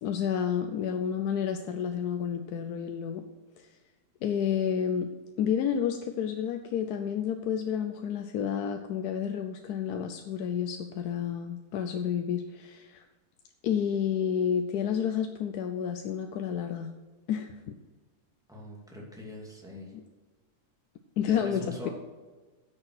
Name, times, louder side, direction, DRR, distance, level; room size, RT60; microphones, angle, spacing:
voice 1, 0.0-3.2 3.6-3.7 4.2-5.1 5.4-13.0 13.6-16.9 17.3-17.6 21.2-21.9, left 8 dB, 75° left, 6 dB, 1.2 m, -30 dB
voice 2, 18.5-19.9 21.3-21.9, left 1 dB, ahead, -3 dB, 2.3 m, -42 dB
9.9 x 6.8 x 6.2 m, 1.3 s
omnidirectional pair, 1.7 m